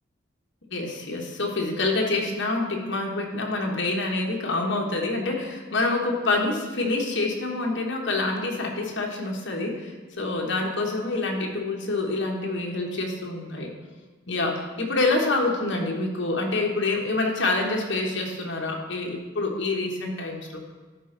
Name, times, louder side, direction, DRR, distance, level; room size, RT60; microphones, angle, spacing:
voice 1, 0.7-13.7 14.3-20.6, left 2 dB, 65° left, 0 dB, 1.3 m, -27 dB
11.5 x 4.4 x 3.9 m, 1.3 s
head